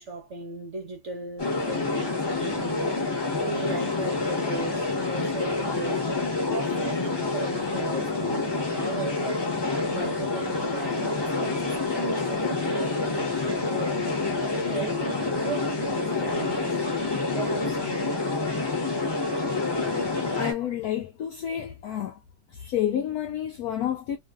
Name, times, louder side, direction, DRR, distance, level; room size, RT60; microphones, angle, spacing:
voice 1, 0.0-9.5 9.9-14.1 14.5-16.9 17.3-18.0, right 3 dB, 55° right, 0.9 m, -37 dB
sound 1, 1.4-20.5, left 3 dB, 20° left, 0.7 m, -27 dB
voice 2, 20.3-22.2 22.6-24.2, left 10 dB, 75° left, 0.9 m, -29 dB
3.0 x 2.5 x 2.3 m
omnidirectional pair, 2.1 m